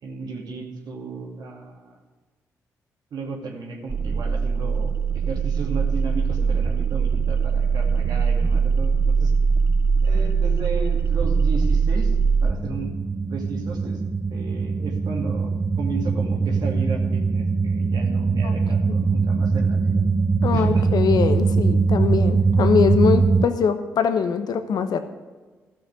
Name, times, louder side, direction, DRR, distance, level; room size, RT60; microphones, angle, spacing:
voice 1, 0.0-2.0 3.1-4.9 5.3-9.3 10.0-12.2 12.4-13.0 13.3-14.0 14.3-15.5 15.8-20.0 20.5-20.9, right 4 dB, 70° right, 1 dB, 2.4 m, -34 dB
sound 1, 3.9-23.5, right 5 dB, 30° right, 0.7 m, -21 dB
voice 2, 20.4-25.0, left 6 dB, 65° left, 10 dB, 0.9 m, -22 dB
13.0 x 6.4 x 8.2 m, 1.3 s
hypercardioid pair, 40°, 7 cm